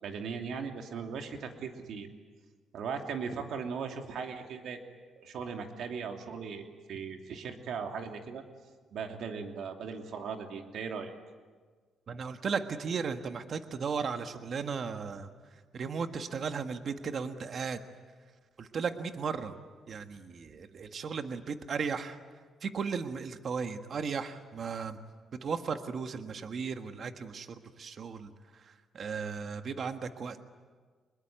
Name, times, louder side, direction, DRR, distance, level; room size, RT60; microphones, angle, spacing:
voice 1, 0.0-2.1 2.7-4.8 5.2-8.4 8.9-11.1, right 6 dB, 70° right, 4 dB, 2.9 m, -38 dB
voice 2, 12.1-15.3 15.7-17.8 18.6-19.6 19.9-22.2 22.6-25.0 25.4-30.4, right 5 dB, 50° right, 7 dB, 1.6 m, -36 dB
25.0 x 21.5 x 9.5 m, 1.5 s
cardioid pair, 90°, 0 cm